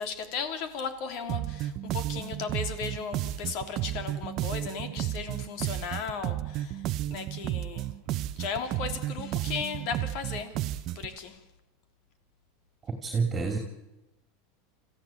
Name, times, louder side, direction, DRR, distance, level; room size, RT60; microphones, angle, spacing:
voice 1, 0.0-6.8 7.1-7.9 8.3-11.4, left 6 dB, 55° left, 7 dB, 3.2 m, -36 dB
sound 1, 1.3-11.1, right 14 dB, 45° right, 0.7 m, -33 dB
voice 2, 13.0-13.6, right 4 dB, 20° right, 4 dB, 2.8 m, -27 dB
26.0 x 15.0 x 8.9 m, 0.98 s
supercardioid pair, 135°, 0 cm